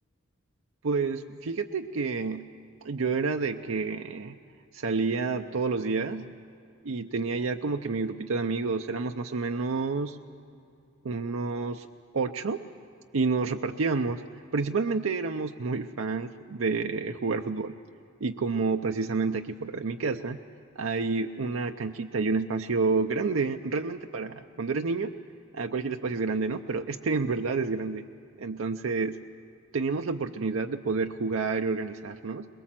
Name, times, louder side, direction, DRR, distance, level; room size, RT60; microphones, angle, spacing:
voice 1, 0.8-2.4 2.8-4.3 4.7-6.3 6.8-10.2 11.0-11.9 12.1-12.6 13.1-14.2 14.5-17.7 18.2-20.4 20.8-25.1 25.5-28.0 28.4-29.2 29.7-32.5, right 4 dB, 85° right, 5 dB, 0.6 m, -29 dB
23.0 x 21.5 x 7.5 m, 2.5 s
head